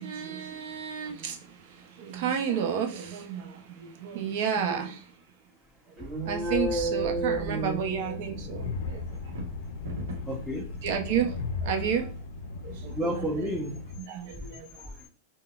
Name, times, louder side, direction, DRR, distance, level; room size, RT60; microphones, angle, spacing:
voice 1, 0.0-5.1 6.2-9.4 10.8-12.1 12.6-13.5 14.0-14.9, right 7 dB, 60° right, 0.7 m, -32 dB
sound 1, 6.0-8.5, right 2 dB, 25° right, 1.1 m, -31 dB
Train, 6.2-14.0, left 4 dB, 70° left, 0.4 m, -37 dB
sound 2, 9.1-10.5, right 1 dB, 80° right, 1.0 m, -38 dB
voice 2, 10.1-10.7 12.9-13.8 14.3-15.1, equal, ahead, 0.8 m, -33 dB
3.9 x 2.2 x 2.4 m
hypercardioid pair, 120°, 0 cm